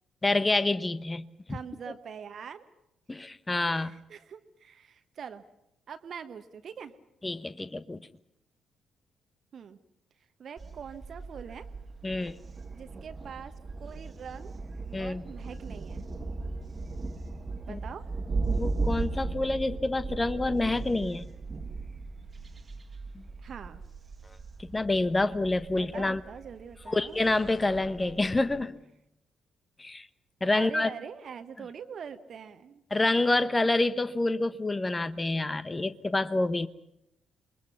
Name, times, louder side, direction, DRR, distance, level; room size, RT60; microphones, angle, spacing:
voice 1, 0.2-1.2 1.5-1.6 3.1-3.9 7.2-8.0 12.0-12.4 14.9-15.2 17.7-17.8 18.5-21.3 23.1-23.2 24.6-26.2 26.9-28.8 29.8-30.1 30.4-30.9 32.9-36.7, left 2 dB, 20° left, 14 dB, 1.1 m, -27 dB
voice 2, 1.5-2.6 3.7-5.4 5.9-6.9 9.5-9.8 10.4-11.7 12.7-13.5 13.8-14.5 15.0-16.1 17.6-18.1 23.4-23.8 25.8-27.2 30.5-32.8, right 7 dB, 50° right, 9 dB, 1.2 m, -43 dB
Thunder, 10.6-28.6, right 3 dB, 35° right, 1.5 m, -37 dB
28.5 x 22.0 x 5.9 m, 0.81 s
figure-of-eight pair, 40°, 0 cm